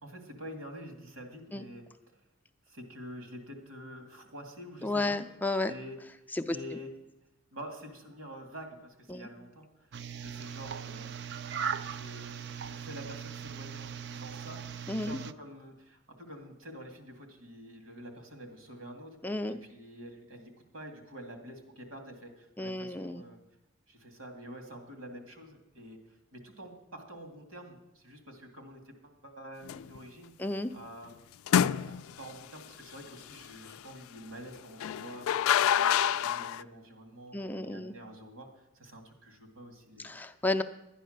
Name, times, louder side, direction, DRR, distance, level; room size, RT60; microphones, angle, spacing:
voice 1, 0.0-2.2 2.7-5.2 5.6-6.0 6.4-6.9 7.5-9.9 10.2-11.1 11.8-14.6 15.0-19.2 19.5-23.4 23.9-26.0 26.3-30.3 30.7-31.1 31.5-40.2, equal, 85° right, 4 dB, 2.3 m, -47 dB
voice 2, 4.8-5.7 6.3-6.6 9.1-9.3 14.9-15.2 19.2-19.6 22.6-23.2 30.4-30.7 37.3-37.9 40.0-40.6, left 2 dB, 10° left, 8 dB, 0.4 m, -32 dB
sound 1, 9.9-15.3, right 7 dB, 55° right, 0.4 m, -39 dB
sound 2, 29.7-30.0 31.5-32.3 34.8-36.6, left 9 dB, 85° left, 0.3 m, -27 dB
11.5 x 10.0 x 6.5 m, 0.93 s
head